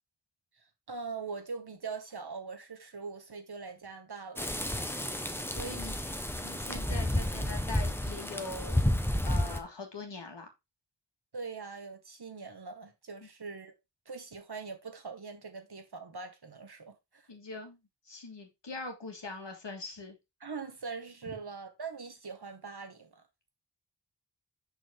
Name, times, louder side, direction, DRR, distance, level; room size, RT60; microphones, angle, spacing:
voice 1, 0.6-4.6 11.3-13.7 14.0-17.2 20.4-23.2, right 4 dB, 65° right, 1.4 m, -42 dB
sound 1, 4.4-9.6, left 1 dB, 5° left, 0.9 m, -31 dB
voice 2, 5.5-6.1 6.4-8.8 9.2-10.5 13.2-13.3 17.3-17.8 18.1-20.2 21.3-21.4, left 3 dB, 80° left, 1.9 m, -42 dB
6.2 x 5.4 x 3.6 m
wide cardioid pair, 45°, 42 cm